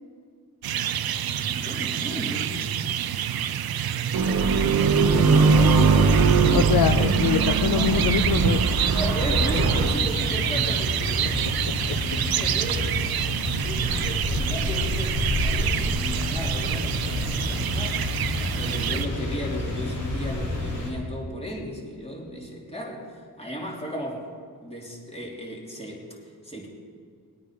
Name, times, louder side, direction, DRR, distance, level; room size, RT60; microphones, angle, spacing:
sound 1, 0.6-19.1, right 9 dB, 60° right, 0.7 m, -27 dB
voice 1, 1.5-3.3 5.2-7.1 8.9-12.9 13.6-18.0 18.5-24.3 24.6-26.7, equal, 15° left, -3 dB, 3.3 m, -35 dB
sound 2, 4.1-9.9, right 4 dB, 45° right, 1.2 m, -21 dB
voice 2, 6.5-8.8 13.6-14.2, left 9 dB, 55° left, 9 dB, 0.6 m, -26 dB
sound 3, 8.8-20.9, left 2 dB, 75° left, 4.1 m, -29 dB
20.5 x 9.4 x 5.1 m, 2.2 s
cardioid pair, 95°, 41 cm